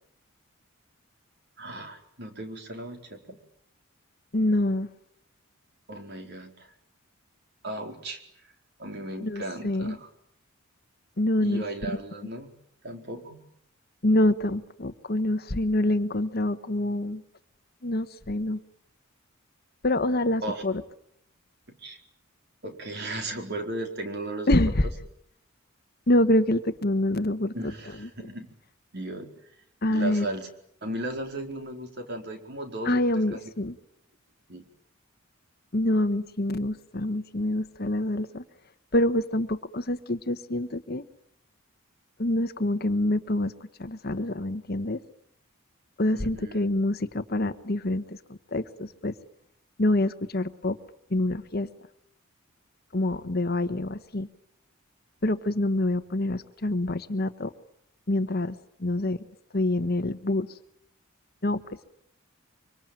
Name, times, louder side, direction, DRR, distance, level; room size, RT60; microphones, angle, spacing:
voice 1, 1.6-3.4 5.9-6.7 7.6-8.2 8.8-10.1 11.4-12.5 12.8-13.5 20.4-20.6 21.7-22.0 22.6-24.5 27.5-28.5 28.9-29.3 29.9-30.5 30.8-33.0 33.3-33.4 34.5-34.6 46.1-46.6, right 1 dB, 50° right, 4 dB, 4.4 m, -36 dB
voice 2, 4.3-4.9 9.2-10.0 11.2-11.6 14.0-17.2 17.8-18.6 19.8-20.8 24.5-24.9 26.1-27.5 28.0-28.1 29.8-30.3 32.8-33.7 35.7-38.4 38.9-41.0 42.2-43.5 43.8-45.0 46.0-49.1 49.8-50.8 51.1-51.7 52.9-54.3 55.2-57.5 58.1-59.2 59.5-60.5 61.4-61.9, left 1 dB, 45° left, 11 dB, 1.2 m, -26 dB
25.0 x 25.0 x 9.0 m, 0.71 s
head